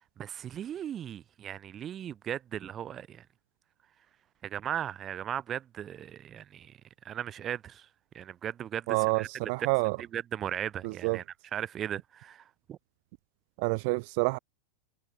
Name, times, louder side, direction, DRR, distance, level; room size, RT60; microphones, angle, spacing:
voice 1, 0.2-3.3 4.4-6.8 7.0-7.9 8.1-9.5 10.0-11.2 11.5-12.8, right 10 dB, 15° right, 3.0 m, -37 dB
voice 2, 8.9-10.0 10.8-11.2 13.6-14.4, right 31 dB, 40° right, 2.3 m, -28 dB
supercardioid pair, 180°, 0 cm